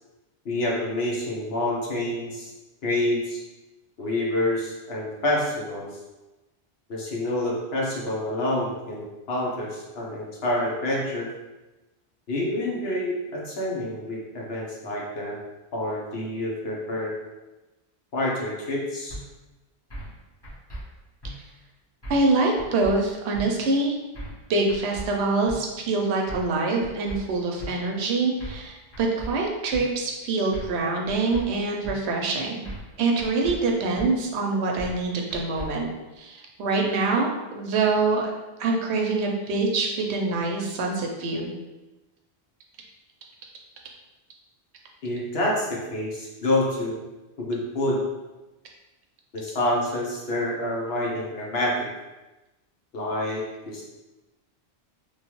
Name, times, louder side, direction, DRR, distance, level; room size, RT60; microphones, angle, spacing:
voice 1, 0.4-2.5 2.8-3.4 4.0-5.9 6.9-11.3 12.3-15.4 15.7-17.1 18.1-19.2 45.0-47.0 47.4-48.0 49.3-51.9 52.9-53.8, left 1 dB, 70° left, -4 dB, 1.0 m, -27 dB
sound 1, 19.1-19.2 19.9-20.2 20.4-20.8 21.2-21.3 22.0-22.3 22.6-22.9 23.3-23.5 24.1-24.4 24.7-25.1 25.5-25.6 26.3-26.5 26.8-27.2 27.6-27.7 28.4-28.7 28.9-29.3 29.7-29.8 30.5-30.8 31.1-31.4 31.8-32.0 32.6-32.9 33.2-33.6 34.0-34.1 34.8-35.0 35.3-35.7, right 1 dB, 25° left, 0.9 m, -37 dB
voice 2, 22.1-24.0 24.5-32.7 33.0-35.9 36.2-37.3 37.5-38.3 38.6-41.5, right 3 dB, 80° right, 1 dB, 0.9 m, -25 dB
3.2 x 2.3 x 2.9 m, 1.1 s
omnidirectional pair, 1.1 m